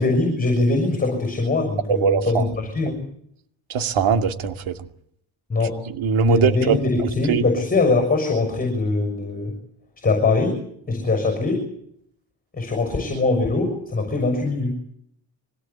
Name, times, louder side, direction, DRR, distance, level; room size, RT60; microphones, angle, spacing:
voice 1, 0.0-3.0 5.5-5.8 6.3-9.5 10.0-10.6 10.9-11.6 12.5-14.7, left 3 dB, 20° left, 4 dB, 6.5 m, -22 dB
voice 2, 1.9-2.4 3.7-4.7 6.0-6.7 7.3-7.4, right 6 dB, 70° right, 5 dB, 2.5 m, -20 dB
24.0 x 18.0 x 8.5 m, 0.70 s
cardioid pair, 145°, 50 cm